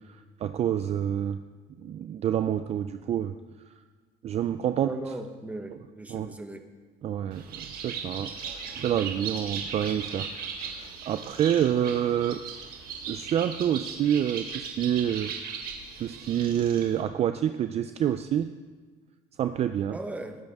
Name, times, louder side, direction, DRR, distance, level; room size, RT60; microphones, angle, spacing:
voice 1, 0.1-1.4 1.8-3.3 4.2-5.1 6.1-6.3 7.0-10.3 10.6-12.4 13.1-15.3 16.0-18.5 19.4-20.0, right 10 dB, 40° right, 10 dB, 0.4 m, -28 dB
voice 2, 4.8-6.6 19.9-20.4, right 2 dB, 10° right, 6 dB, 1.1 m, -37 dB
Bird, 7.3-17.0, right 6 dB, 60° right, 1.8 m, -38 dB
19.5 x 10.5 x 3.6 m, 1.5 s
cardioid pair, 130°, 17 cm